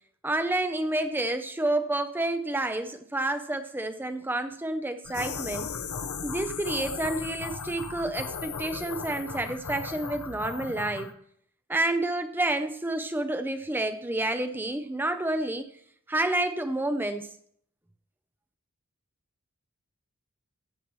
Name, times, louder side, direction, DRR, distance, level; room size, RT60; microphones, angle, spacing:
voice 1, 0.2-5.7 6.2-11.1 11.7-15.6 16.1-17.3, right 2 dB, 10° right, 9 dB, 0.5 m, -29 dB
sound 1, 5.0-11.1, left 5 dB, 80° left, 0.9 m, -36 dB
14.0 x 8.6 x 3.1 m, 0.66 s
head